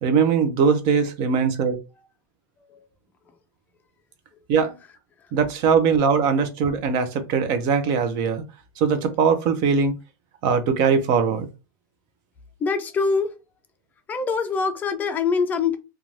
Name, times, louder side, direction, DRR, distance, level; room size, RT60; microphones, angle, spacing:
voice 1, 0.0-1.8 4.5-4.8 5.3-8.4 8.8-10.0 10.4-11.5, right 6 dB, 45° right, 0.5 m, -21 dB
voice 2, 12.6-13.3 14.1-15.7, left 5 dB, 15° left, 0.4 m, -24 dB
2.5 x 2.3 x 3.1 m
supercardioid pair, 160°, 10 cm